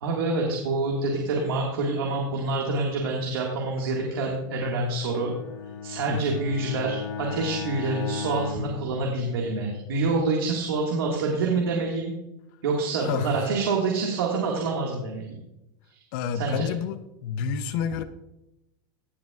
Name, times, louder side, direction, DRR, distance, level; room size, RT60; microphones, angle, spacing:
voice 1, 0.0-5.3 5.8-12.1 12.6-15.4 15.9-16.0 16.3-16.7, right 3 dB, 90° right, -1 dB, 1.8 m, -27 dB
Bowed string instrument, 5.1-9.8, left 6 dB, 75° left, 1.7 m, -36 dB
voice 2, 13.0-13.5 16.1-18.0, left 7 dB, 60° left, 11 dB, 0.7 m, -29 dB
17.0 x 7.4 x 2.4 m, 0.92 s
supercardioid pair, 135°, 12 cm